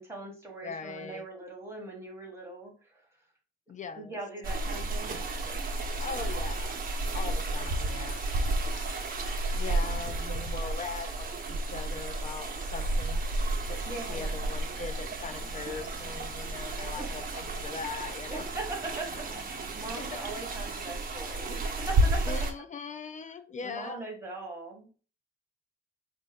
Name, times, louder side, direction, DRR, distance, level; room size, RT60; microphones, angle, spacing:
voice 1, 0.0-3.0 4.0-5.2 9.6-10.1 13.8-14.4 17.0-17.1 18.3-22.3 23.6-24.9, right 2 dB, 10° right, -1 dB, 1.4 m, -41 dB
voice 2, 0.6-1.2 3.7-4.2 5.1-5.2 6.0-6.7 7.1-8.2 9.5-13.2 13.7-18.5 19.7-20.2 22.3-24.1, left 5 dB, 40° left, 11 dB, 0.4 m, -40 dB
sound 1, 4.4-22.5, right 2 dB, 45° right, 0.8 m, -32 dB
Subway metro underground, 11.6-22.2, left 1 dB, 55° left, 2.0 m, -54 dB
4.8 x 2.5 x 4.0 m, 0.37 s
wide cardioid pair, 150°, 20 cm